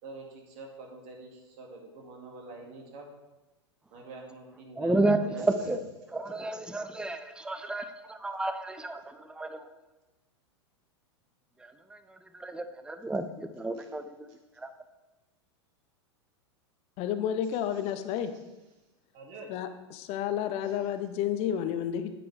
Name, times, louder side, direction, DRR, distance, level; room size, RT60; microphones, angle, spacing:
voice 1, 0.0-3.1 3.9-5.6 13.8-13.9 18.1-18.2 19.1-19.5 20.6-20.7, right 3 dB, 50° right, 1 dB, 2.3 m, -46 dB
voice 2, 4.8-5.8 6.1-9.7 11.6-14.3 14.6-14.7, right 2 dB, 5° right, 9 dB, 0.6 m, -31 dB
voice 3, 17.0-18.3 19.5-22.1, left 9 dB, 45° left, 10 dB, 0.8 m, -31 dB
8.8 x 8.5 x 3.4 m, 1.1 s
hypercardioid pair, 100°, 15 cm